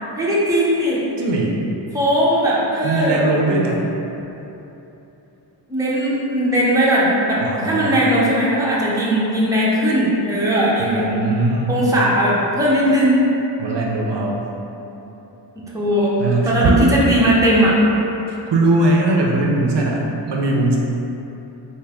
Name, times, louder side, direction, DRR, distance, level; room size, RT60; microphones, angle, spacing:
voice 1, 0.1-1.0 1.9-3.2 5.7-11.1 11.7-13.2 15.6-16.1 16.4-17.7, equal, 10° right, -7 dB, 0.6 m, -18 dB
voice 2, 1.2-1.5 2.8-3.8 7.4-8.0 10.8-11.9 13.6-14.5 16.2-16.8 18.3-20.8, right 2 dB, 70° right, -1 dB, 0.5 m, -20 dB
3.6 x 2.6 x 3.4 m, 3.0 s
wide cardioid pair, 140°, 44 cm